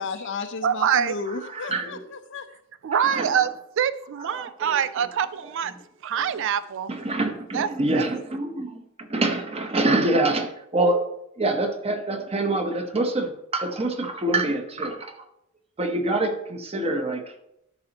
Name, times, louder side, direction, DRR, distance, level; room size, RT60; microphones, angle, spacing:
voice 1, 0.0-2.4, left 4 dB, 60° left, 0.7 m, -33 dB
voice 2, 0.6-1.2 2.8-3.5 3.8-5.7 6.0-6.9 7.5-8.0, right 8 dB, 60° right, 0.4 m, -25 dB
voice 3, 1.5-2.1 3.0-3.3 4.3-4.8 6.9-8.8 9.1-11.1 11.4-15.1 15.8-17.2, right 2 dB, 30° right, 0.9 m, -25 dB
13.0 x 5.5 x 2.9 m
head